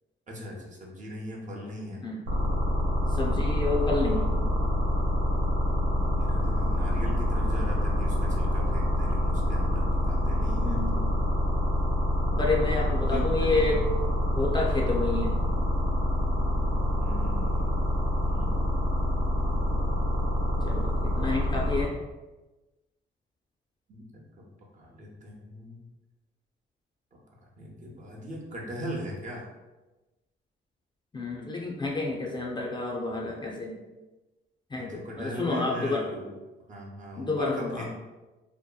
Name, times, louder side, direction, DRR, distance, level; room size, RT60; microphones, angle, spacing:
voice 1, 0.3-2.0 5.8-11.2 12.3-13.8 16.9-18.5 23.9-24.2 24.7-25.8 27.6-29.5 34.7-36.3 36.7-37.9, equal, 40° right, -1 dB, 0.6 m, -40 dB
sound 1, 2.3-21.8, left 1 dB, 90° right, 0.9 m, -26 dB
voice 2, 3.1-4.3 10.5-11.1 12.4-13.8 14.3-15.4 20.6-21.9 31.1-33.8 34.7-36.0 37.2-37.9, left 3 dB, 25° left, -2 dB, 0.4 m, -29 dB
2.8 x 2.1 x 2.2 m, 1.1 s
cardioid pair, 90°, 20 cm